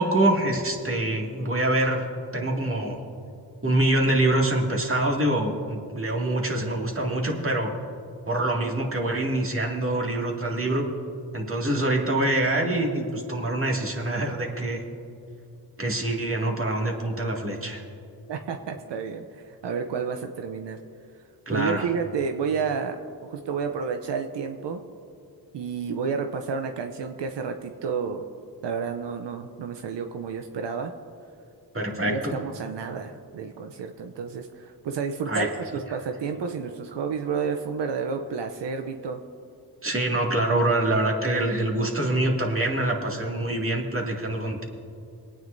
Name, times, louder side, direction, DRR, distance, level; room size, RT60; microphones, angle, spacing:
voice 1, 0.0-2.0 2.3-3.0 3.6-7.7 8.3-10.9 11.3-14.8 15.8-17.8 21.5-21.9 31.7-32.4 35.3-35.5 39.8-44.6, right 1 dB, 30° right, 0 dB, 2.2 m, -25 dB
voice 2, 18.3-20.8 21.5-24.8 25.5-28.2 28.6-30.9 32.1-39.2, right 6 dB, 85° right, 6 dB, 0.6 m, -30 dB
23.5 x 9.3 x 2.6 m, 2.6 s
cardioid pair, 40°, 41 cm